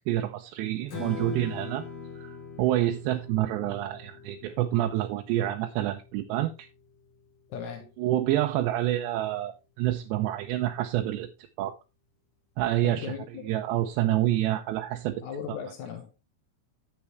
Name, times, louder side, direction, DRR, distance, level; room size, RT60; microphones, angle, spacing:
voice 1, 0.1-1.9 2.2-6.7 8.0-9.5 9.8-11.3 11.6-11.7 12.6-13.1 13.5-15.1, right 13 dB, 85° right, 3.0 m, -27 dB
Strum, 0.9-7.2, left 5 dB, 55° left, 4.6 m, -42 dB
voice 2, 7.5-7.9 12.8-13.6 15.2-16.1, left 7 dB, 70° left, 1.8 m, -37 dB
10.5 x 8.6 x 3.1 m
omnidirectional pair, 4.9 m